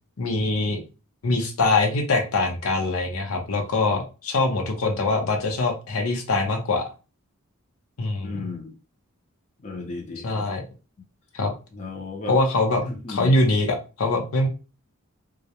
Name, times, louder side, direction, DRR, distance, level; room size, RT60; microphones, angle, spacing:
voice 1, 0.2-0.8 1.2-6.9 8.0-8.4 10.2-10.6 11.3-11.5 12.3-14.5, left 2 dB, 75° left, 0.6 m, -23 dB
voice 2, 8.2-8.7 9.6-10.5 11.7-12.3 12.9-13.3, left 3 dB, 35° left, 0.5 m, -34 dB
2.3 x 2.0 x 2.7 m
head